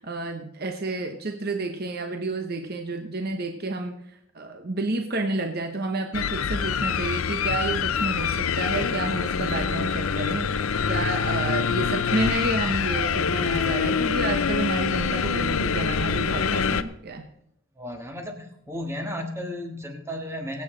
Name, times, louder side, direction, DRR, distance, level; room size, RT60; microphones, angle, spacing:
voice 1, 0.0-4.0 4.3-17.3, right 2 dB, 45° right, 5 dB, 0.9 m, -30 dB
sound 1, 6.1-16.8, left 6 dB, 75° left, 0.6 m, -25 dB
voice 2, 17.7-20.6, left 1 dB, 10° right, 4 dB, 1.6 m, -34 dB
23.0 x 8.4 x 3.8 m, 0.77 s
head